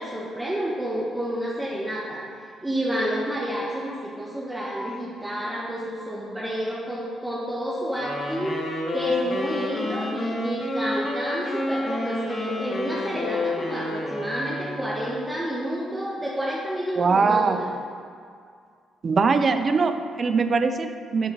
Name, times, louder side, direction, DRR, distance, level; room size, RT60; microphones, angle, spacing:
voice 1, 0.0-2.2 2.6-17.7, equal, 10° right, -6 dB, 1.6 m, -29 dB
Wind instrument woodwind instrument, 7.9-15.2, left 2 dB, 45° left, 2.2 m, -30 dB
voice 2, 17.0-17.6 19.0-21.3, right 4 dB, 40° right, 9 dB, 0.6 m, -22 dB
10.0 x 8.0 x 4.0 m, 2.2 s
cardioid pair, 90°, 0 cm